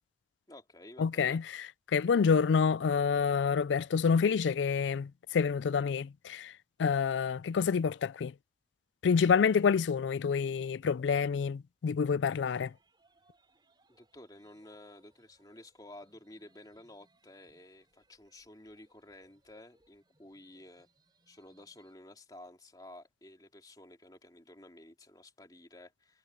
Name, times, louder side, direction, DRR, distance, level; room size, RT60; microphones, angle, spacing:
voice 1, 0.5-1.4 13.9-20.9 21.3-26.2, left 1 dB, 20° left, 3.1 m, -53 dB
voice 2, 1.0-1.4 1.9-6.5 6.8-8.3 9.0-12.7, left 6 dB, 90° left, 0.4 m, -28 dB
sound 1, 12.5-21.9, right 2 dB, 25° right, 5.9 m, -71 dB
head